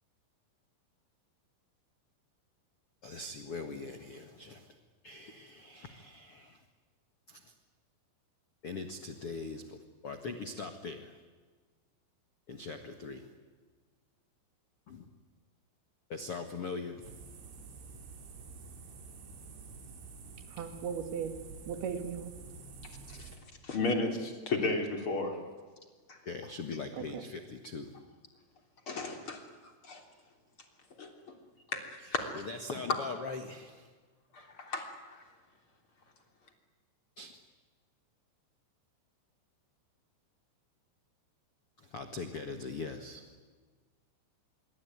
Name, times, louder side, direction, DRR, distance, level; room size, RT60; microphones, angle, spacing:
voice 1, 3.0-4.7 5.0-6.6 7.3-7.4 8.6-11.1 12.5-13.3 14.9-15.1 16.1-17.1 26.2-27.9 32.3-33.9 37.2-37.4 41.9-43.2, left 4 dB, 80° left, 7 dB, 1.2 m, -41 dB
sound 1, 17.0-23.4, right 4 dB, 75° right, 6.0 m, -49 dB
voice 2, 20.5-21.3 21.7-22.3 26.9-27.3, right 7 dB, 60° right, 8 dB, 3.9 m, -37 dB
voice 3, 23.6-25.4 26.1-26.2 28.9-29.4 29.8-30.0 31.0-31.1 31.7-31.9 32.1-32.3 32.9-33.0 34.3-35.2, left 3 dB, 30° left, 4 dB, 3.6 m, -33 dB
26.5 x 23.0 x 9.5 m, 1.5 s
omnidirectional pair, 5.5 m